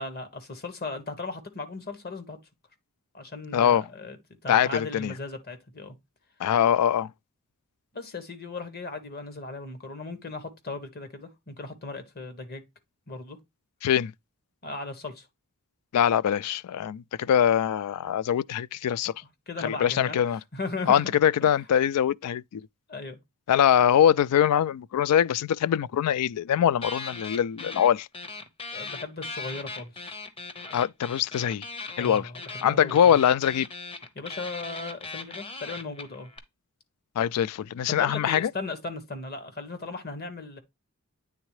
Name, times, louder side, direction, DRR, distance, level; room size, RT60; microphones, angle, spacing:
voice 1, 0.0-2.4 3.1-4.2 4.4-5.9 7.9-12.6 13.1-13.4 14.6-15.3 19.5-21.1 22.9-23.2 28.7-30.2 32.0-33.2 34.1-36.3 37.9-40.6, left 3 dB, 45° left, 1.4 m, -37 dB
voice 2, 3.5-3.8 4.5-5.1 6.4-7.1 13.8-14.1 15.9-19.1 19.6-20.4 20.9-22.6 23.5-28.1 30.7-31.7 32.0-32.3 32.6-33.7 37.2-38.5, left 9 dB, 90° left, 0.3 m, -23 dB
sound 1, 26.8-27.9 28.1-36.4, left 3 dB, 25° left, 0.9 m, -39 dB
9.1 x 3.6 x 3.1 m
head